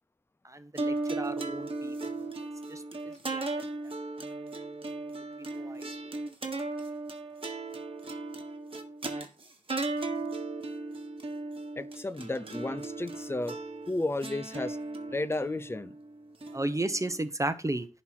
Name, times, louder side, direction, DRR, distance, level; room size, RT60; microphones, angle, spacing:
voice 1, 0.4-2.3 2.7-3.4 5.4-5.9 16.5-17.9, right 1 dB, 25° right, 0.9 m, -34 dB
sound 1, 0.8-17.2, right 2 dB, 40° right, 1.6 m, -36 dB
voice 2, 11.8-13.6 13.9-14.8 15.1-16.0, left 2 dB, 20° left, 0.6 m, -33 dB
11.0 x 4.3 x 5.7 m
wide cardioid pair, 85°, 14 cm